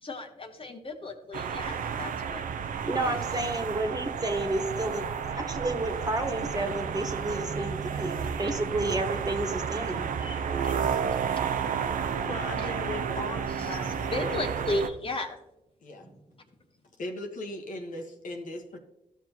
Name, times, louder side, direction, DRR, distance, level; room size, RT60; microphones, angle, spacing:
voice 1, 0.0-2.4 3.0-3.2 7.4-7.6 7.9-8.0 8.3-8.4 9.8-12.3 12.6-12.7 13.6-15.4, left 2 dB, 35° left, 4 dB, 1.3 m, -37 dB
sound 1, 1.3-14.9, right 7 dB, 65° right, 0.7 m, -31 dB
voice 2, 2.8-10.1 16.0-16.1, right 2 dB, 25° right, 3 dB, 1.6 m, -31 dB
voice 3, 12.2-14.3 15.8-16.1 17.0-18.8, left 2 dB, 60° left, 2 dB, 1.3 m, -38 dB
13.5 x 5.9 x 2.9 m, 0.89 s
supercardioid pair, 55°, 15 cm